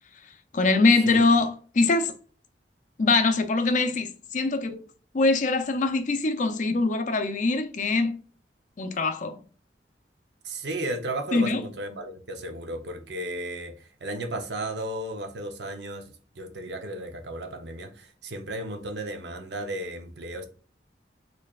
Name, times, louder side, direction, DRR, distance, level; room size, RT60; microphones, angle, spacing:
voice 1, 0.5-2.1 3.0-4.8 5.1-8.2 8.8-9.4 11.3-11.6, left 3 dB, 45° left, 0.5 m, -23 dB
voice 2, 10.4-20.5, right 1 dB, 70° right, 0.7 m, -34 dB
4.1 x 3.2 x 2.4 m
head